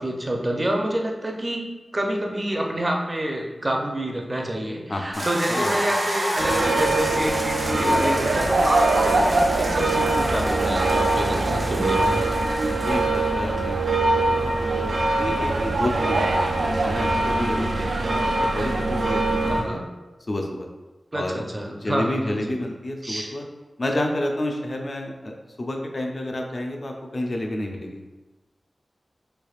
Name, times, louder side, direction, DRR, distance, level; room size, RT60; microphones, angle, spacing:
voice 1, 0.0-1.6 1.9-12.2 19.4-19.9 21.1-22.6 23.0-23.3, right 1 dB, 30° right, 1 dB, 0.5 m, -27 dB
voice 2, 4.9-5.8 12.6-19.8 20.3-20.7 21.1-21.4 21.7-23.4 23.8-25.3 25.6-28.1, left 1 dB, 50° left, 2 dB, 0.5 m, -30 dB
sound 1, 5.1-13.3, equal, 60° right, 0.9 m, -30 dB
sound 2, 6.4-19.7, right 2 dB, 80° right, 0.3 m, -22 dB
3.3 x 3.3 x 2.4 m, 1.2 s
wide cardioid pair, 70°, 0 cm